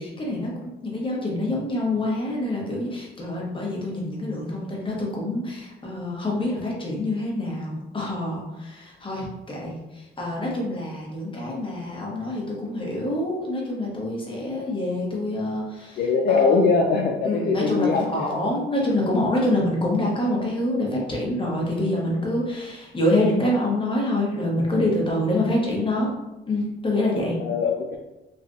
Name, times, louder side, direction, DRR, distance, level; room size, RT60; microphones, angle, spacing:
voice 1, 0.0-16.0 16.3-16.6 17.2-26.1 26.5-27.4, left 1 dB, 25° left, -3 dB, 1.0 m, -26 dB
voice 2, 16.0-18.3 27.4-28.0, left 4 dB, 50° left, 1 dB, 0.4 m, -21 dB
3.2 x 2.4 x 2.6 m, 0.99 s
cardioid pair, 90°, 20 cm